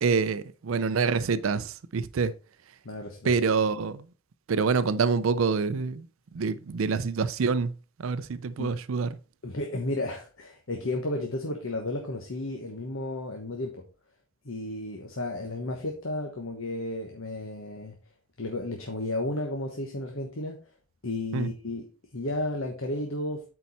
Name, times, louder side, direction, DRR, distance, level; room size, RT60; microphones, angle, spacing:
voice 1, 0.0-2.3 3.2-4.0 4.5-6.0 6.3-7.7 8.0-9.2 21.3-21.5, right 5 dB, 70° right, 0.5 m, -26 dB
voice 2, 2.8-3.3 8.6-8.8 9.4-13.8 14.4-17.9 18.4-20.6 21.0-21.9 22.1-23.4, left 2 dB, 70° left, 1.2 m, -33 dB
8.4 x 4.6 x 4.1 m
head